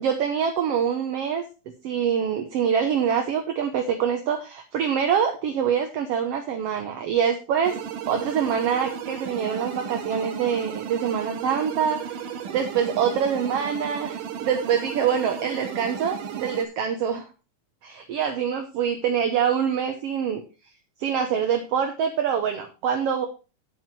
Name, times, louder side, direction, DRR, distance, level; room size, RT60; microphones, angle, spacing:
voice 1, 0.0-1.4 1.8-7.8 8.1-17.2 17.8-20.4 21.0-23.3, right 7 dB, 65° right, 5 dB, 1.6 m, -25 dB
sound 1, 7.6-16.6, right 8 dB, 85° right, 2.7 m, -34 dB
9.3 x 7.9 x 4.6 m, 0.32 s
omnidirectional pair, 3.6 m